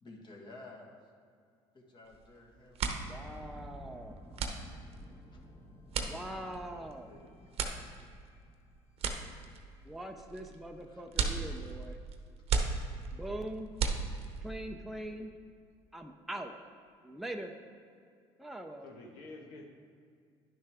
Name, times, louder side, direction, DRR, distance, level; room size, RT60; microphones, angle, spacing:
voice 1, 0.0-0.9 1.7-3.0 10.9-11.0, left 2 dB, 40° left, -1 dB, 1.5 m, -52 dB
sound 1, 2.1-2.3 2.6-14.5, right 5 dB, 55° right, 0.9 m, -36 dB
voice 2, 3.0-4.2 6.0-7.1 9.8-12.0 13.1-13.7 14.4-15.3 15.9-16.5 17.0-17.5 18.4-18.9, right 1 dB, ahead, 3 dB, 0.5 m, -42 dB
sound 2, 3.1-9.3 9.6-9.7, left 1 dB, 15° left, 1.1 m, -53 dB
voice 3, 6.7-7.3 18.8-19.7, left 2 dB, 75° left, 1 dB, 1.2 m, -50 dB
10.5 x 6.3 x 3.5 m, 2.2 s
supercardioid pair, 90°, 12 cm